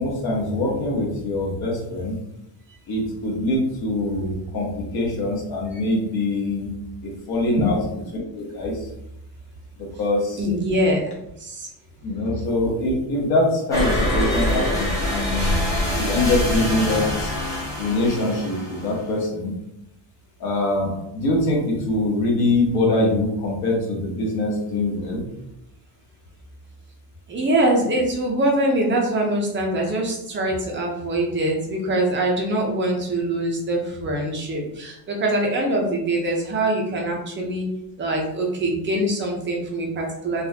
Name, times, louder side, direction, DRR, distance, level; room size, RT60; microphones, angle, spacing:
voice 1, 0.0-2.2 2.9-6.7 7.0-7.8 8.3-8.9 9.8-10.4 12.0-15.6 16.0-17.3 17.8-19.5 20.4-25.2, left 2 dB, 50° left, -3 dB, 1.3 m, -23 dB
voice 2, 10.4-11.1 11.4-11.7 27.3-37.7 38.0-40.5, right 1 dB, 25° right, -1 dB, 0.6 m, -23 dB
sound 1, 13.7-19.2, left 1 dB, 5° left, 0.9 m, -24 dB
4.0 x 2.4 x 2.7 m, 0.84 s
cardioid pair, 165°, 48 cm